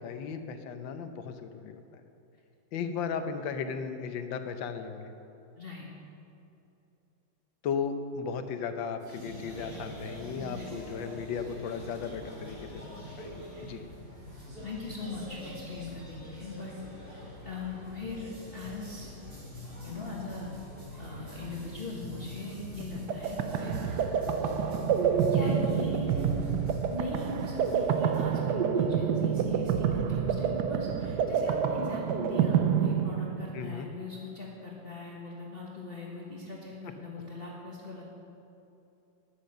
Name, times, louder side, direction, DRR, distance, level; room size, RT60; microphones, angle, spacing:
voice 1, 0.0-2.0 2.7-5.1 7.6-13.8 33.5-33.9, left 6 dB, 80° left, 8 dB, 1.5 m, -36 dB
sound 1, 9.0-28.2, left 1 dB, 50° right, 3.8 m, -44 dB
voice 2, 14.6-16.7 17.4-19.1 19.8-20.5 21.0-23.8 25.3-26.6 26.9-38.0, left 2 dB, 35° left, -4 dB, 1.5 m, -40 dB
sound 2, 22.8-33.7, right 7 dB, 70° right, 1.2 m, -28 dB
10.5 x 10.0 x 6.7 m, 2.8 s
omnidirectional pair, 2.1 m